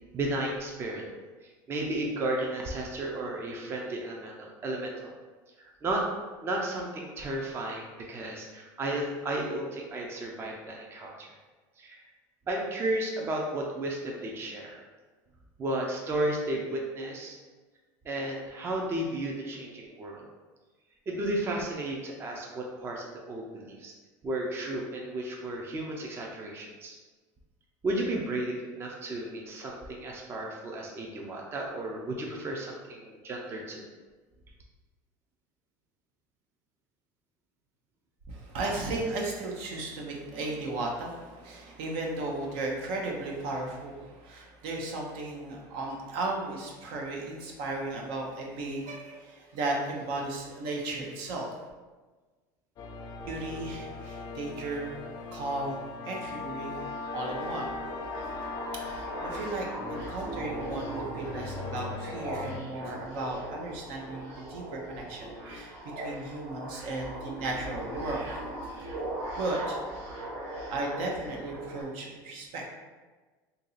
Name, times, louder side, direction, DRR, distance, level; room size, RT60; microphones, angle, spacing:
voice 1, 0.1-1.0 1.4-5.1 5.6-6.1 6.4-11.3 11.8-12.0 12.5-14.8 15.6-17.4 18.0-20.3 21.1-23.9 24.2-27.0 27.8-33.9, right 1 dB, 25° right, -1 dB, 0.5 m, -33 dB
voice 2, 38.3-51.6 53.2-56.9 57.1-57.8 58.7-65.7 66.0-68.7 69.4-69.8 70.7-72.6, right 2 dB, 70° right, 0 dB, 0.8 m, -35 dB
sound 1, 52.8-62.6, left 3 dB, 40° left, 0.4 m, -39 dB
sound 2, 56.5-71.8, right 1 dB, 85° right, 1.1 m, -40 dB
2.8 x 2.7 x 3.9 m, 1.3 s
supercardioid pair, 130°, 10 cm